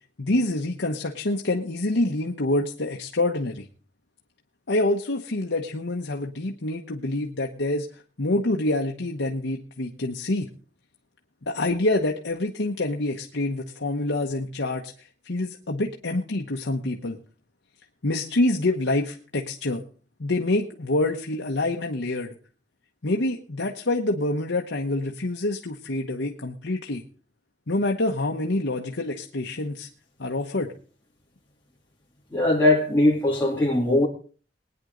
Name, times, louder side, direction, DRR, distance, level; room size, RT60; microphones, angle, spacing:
voice 1, 0.2-3.7 4.7-7.9 8.2-10.5 11.5-17.2 18.0-19.8 20.2-22.3 23.0-27.0 27.7-29.9 30.2-30.7, left 2 dB, 90° left, 1.1 m, -26 dB
voice 2, 32.3-34.1, left 1 dB, 10° left, 2.5 m, -20 dB
20.5 x 9.9 x 3.9 m
head